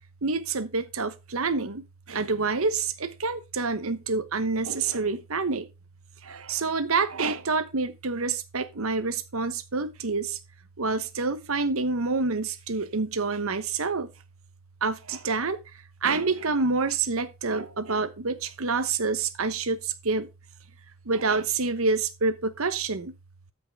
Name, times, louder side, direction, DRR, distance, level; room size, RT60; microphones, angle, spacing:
voice 1, 0.2-5.6 6.2-10.4 10.8-14.1 14.8-15.6 16.0-20.3 21.1-23.1, right 4 dB, 75° right, 1.1 m, -27 dB
13.0 x 5.9 x 3.7 m
head